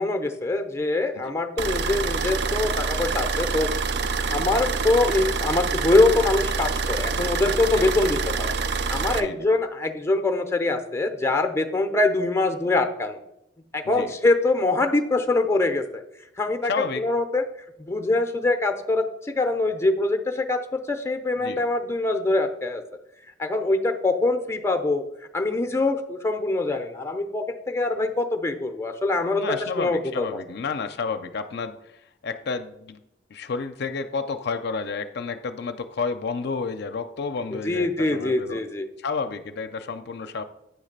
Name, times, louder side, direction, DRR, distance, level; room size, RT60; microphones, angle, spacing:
voice 1, 0.0-3.7 4.3-8.5 8.9-13.2 13.7-16.0 16.4-16.7 17.0-17.4 17.8-22.8 23.4-25.0 25.3-30.3 37.6-38.9, left 2 dB, 15° left, 6 dB, 0.6 m, -24 dB
sound 1, 1.6-9.2, right 4 dB, 60° right, 0.4 m, -26 dB
voice 2, 7.7-8.1 9.1-9.5 13.8-14.1 16.6-17.0 21.4-21.6 29.4-32.0 32.2-33.0 33.3-38.6 39.0-40.4, left 4 dB, 60° left, 8 dB, 0.5 m, -31 dB
9.0 x 3.2 x 6.5 m, 0.83 s
head